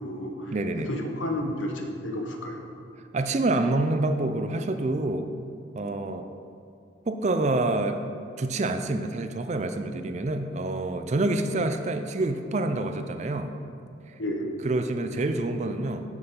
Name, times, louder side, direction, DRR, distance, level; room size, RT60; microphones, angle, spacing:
voice 1, 0.0-0.5 0.9-2.7 14.2-14.5, left 1 dB, 75° left, 3 dB, 1.0 m, -31 dB
voice 2, 0.5-0.9 3.1-5.3 5.8-6.3 7.1-8.0 8.4-13.5 14.1-14.2 14.6-16.0, right 2 dB, 35° right, 8 dB, 0.4 m, -27 dB
7.1 x 6.8 x 5.2 m, 2.4 s
head